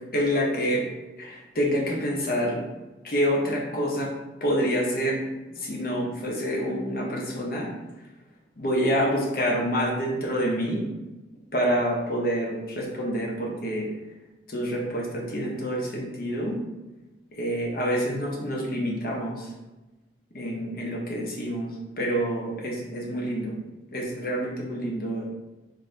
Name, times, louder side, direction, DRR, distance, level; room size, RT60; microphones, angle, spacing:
voice 1, 0.1-0.9 1.2-2.6 3.0-4.1 4.4-5.2 5.5-7.7 8.6-10.8 11.5-13.9 14.5-16.6 17.3-19.5 20.3-21.7 22.0-23.6 23.9-25.3, equal, 55° left, -2 dB, 0.8 m, -27 dB
3.8 x 2.7 x 3.2 m, 1.1 s
head